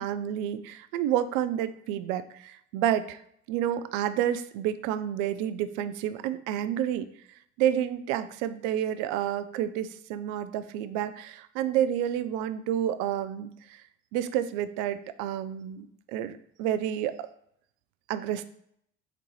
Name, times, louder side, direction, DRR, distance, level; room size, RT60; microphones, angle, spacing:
voice 1, 0.0-3.2 3.5-7.1 7.6-13.8 14.1-17.3 18.1-18.4, right 10 dB, 60° right, 12 dB, 0.5 m, -29 dB
4.4 x 3.9 x 3.0 m, 0.70 s
hypercardioid pair, 65°, 36 cm